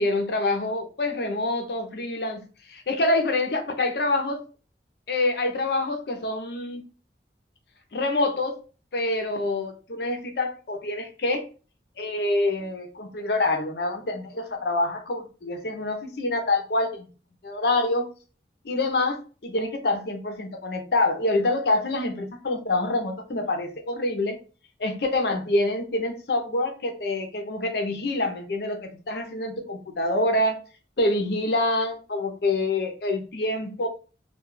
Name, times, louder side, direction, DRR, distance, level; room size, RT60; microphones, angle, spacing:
voice 1, 0.0-2.4 2.7-4.4 5.1-6.8 7.9-8.6 8.9-11.4 12.0-17.1 17.4-18.1 18.6-24.4 24.8-30.6 31.0-33.9, left 2 dB, 60° left, 0.6 m, -26 dB
2.2 x 2.2 x 3.1 m
head